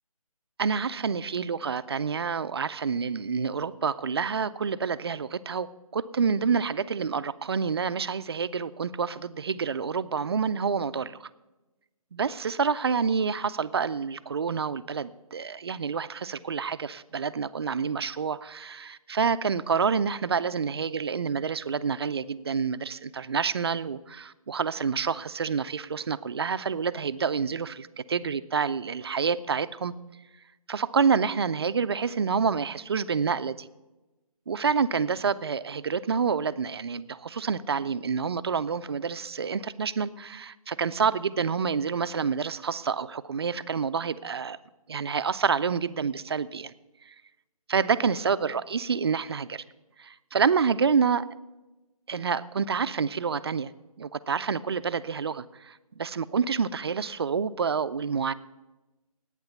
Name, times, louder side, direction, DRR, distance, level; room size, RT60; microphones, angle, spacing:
voice 1, 0.6-11.3 12.1-29.9 30.7-33.7 34.5-44.6 44.9-46.7 47.7-49.6 50.0-51.3 52.1-53.7 54.0-58.3, right 6 dB, 40° right, 13 dB, 0.4 m, -28 dB
10.5 x 9.0 x 7.0 m, 1.1 s
figure-of-eight pair, 155°, 19 cm